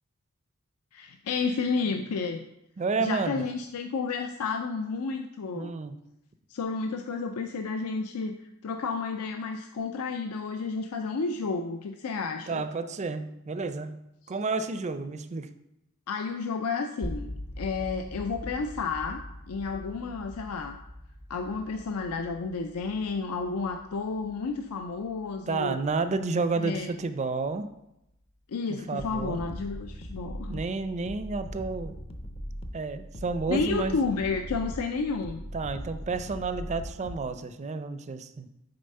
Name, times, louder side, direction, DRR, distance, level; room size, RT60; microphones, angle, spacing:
voice 1, 0.9-2.5 3.0-5.8 6.5-8.4 8.6-12.7 16.1-19.2 19.5-20.8 21.3-25.8 26.6-26.9 28.5-30.6 33.5-35.4, left 4 dB, 80° left, 5 dB, 0.5 m, -31 dB
voice 2, 2.8-3.5 5.5-6.0 12.5-15.5 25.5-27.7 28.7-29.4 30.5-32.0 32.7-34.0 35.5-38.5, right 4 dB, 30° right, 10 dB, 0.4 m, -31 dB
sound 1, 17.0-27.0, left 1 dB, 65° left, 2.5 m, -43 dB
sound 2, 29.0-37.3, equal, 30° left, 0.5 m, -40 dB
6.8 x 4.1 x 5.4 m, 0.86 s
head